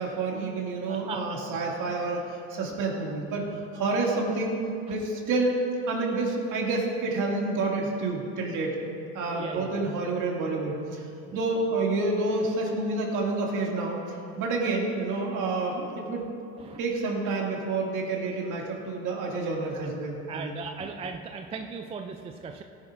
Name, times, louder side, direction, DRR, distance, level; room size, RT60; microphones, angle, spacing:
voice 1, 0.0-5.5 5.9-8.8 9.1-11.1 11.3-16.3 16.8-20.6, right 3 dB, 50° right, -2 dB, 2.4 m, -29 dB
voice 2, 0.9-1.4 1.9-2.0 9.3-9.9 11.3-11.4 16.6-16.8 19.7-19.9 20.3-22.6, right 5 dB, 15° right, 5 dB, 0.3 m, -38 dB
16.0 x 10.0 x 2.6 m, 2.7 s
supercardioid pair, 115°, 38 cm